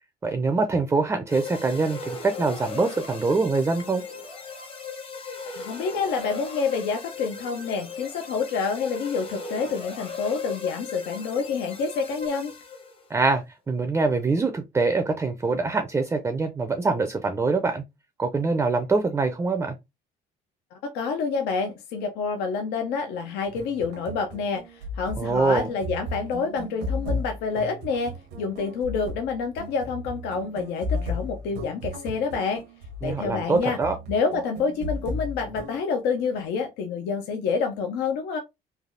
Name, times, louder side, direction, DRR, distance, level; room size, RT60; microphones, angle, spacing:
voice 1, 0.2-4.0 13.1-17.8 18.2-19.8 25.2-25.7 33.0-34.0, right 3 dB, 15° right, 0.4 m, -24 dB
sound 1, 1.3-13.1, left 4 dB, 30° left, 0.8 m, -37 dB
voice 2, 5.6-12.5 20.8-28.1 28.4-32.6 33.0-33.8 34.1-38.4, left 5 dB, 85° left, 0.5 m, -28 dB
sound 2, 23.4-35.8, left 1 dB, 80° right, 0.7 m, -35 dB
3.3 x 2.3 x 2.5 m
cardioid pair, 110°, 17 cm